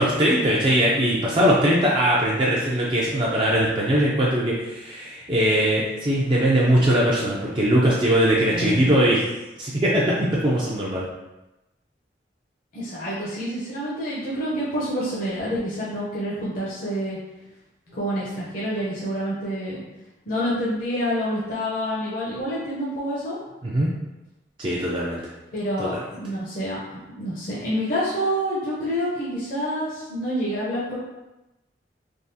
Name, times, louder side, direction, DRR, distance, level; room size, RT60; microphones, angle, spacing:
voice 1, 0.0-9.2 9.6-11.1 23.6-23.9 24.6-25.2 25.8-26.0, right 1 dB, 30° right, -5 dB, 0.4 m, -21 dB
voice 2, 8.5-8.8 12.7-17.2 17.9-19.8 20.3-23.4 25.5-26.8 27.2-31.0, equal, 50° left, -7 dB, 0.6 m, -27 dB
3.5 x 2.3 x 2.6 m, 1.0 s
head